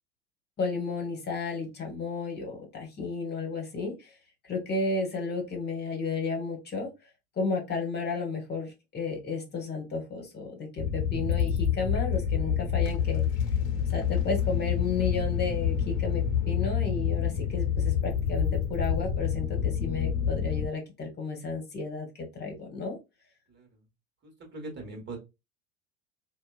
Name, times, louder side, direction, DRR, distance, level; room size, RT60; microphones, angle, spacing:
voice 1, 0.6-4.1 4.5-6.9 7.4-13.2 13.9-23.0, left 4 dB, 30° left, 1.2 m, -33 dB
sound 1, 10.8-20.7, left 8 dB, 65° left, 0.7 m, -27 dB
voice 2, 24.2-25.2, right 2 dB, 30° right, 1.4 m, -41 dB
2.8 x 2.2 x 2.3 m
hypercardioid pair, 85°, 33 cm